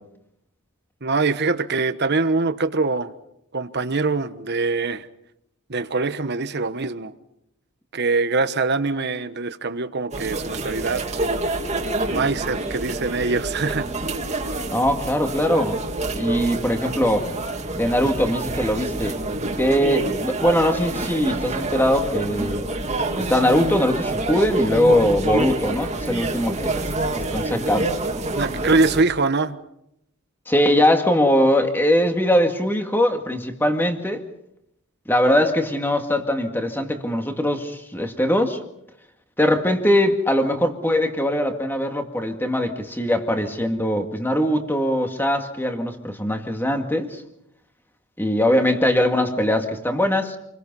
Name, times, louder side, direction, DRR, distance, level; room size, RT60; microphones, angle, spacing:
voice 1, 1.0-3.1 3.5-5.1 5.7-7.1 7.9-11.4 12.1-13.9 28.3-29.6, right 3 dB, 50° right, 1.2 m, -23 dB
sound 1, 10.1-29.0, right 2 dB, 30° right, 2.3 m, -27 dB
voice 2, 14.7-15.8 16.1-17.3 17.7-19.2 19.6-22.6 23.2-26.8 27.1-27.9 30.5-34.2 35.1-38.6 39.4-47.2 48.2-50.4, left 1 dB, 10° left, 2.0 m, -21 dB
28.5 x 22.0 x 5.5 m
head